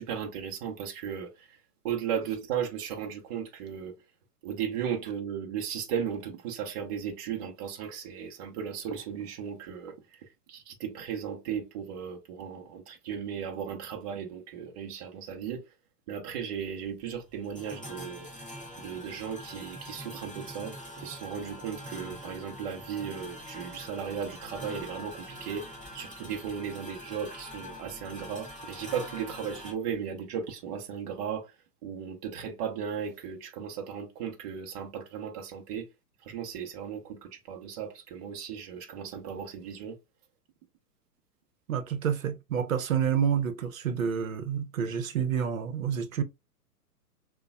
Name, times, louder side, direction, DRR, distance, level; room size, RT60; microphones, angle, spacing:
voice 1, 0.0-1.5 1.8-3.9 4.4-9.9 10.5-15.6 16.1-18.3 18.8-25.7 25.9-31.5 31.8-35.9 36.2-40.0, right 8 dB, 25° right, 0.6 m, -36 dB
sound 1, 16.5-29.7, equal, 5° left, 0.3 m, -44 dB
voice 2, 41.7-46.2, right 7 dB, 55° right, 0.8 m, -29 dB
6.6 x 2.3 x 2.3 m
figure-of-eight pair, 120°, 48 cm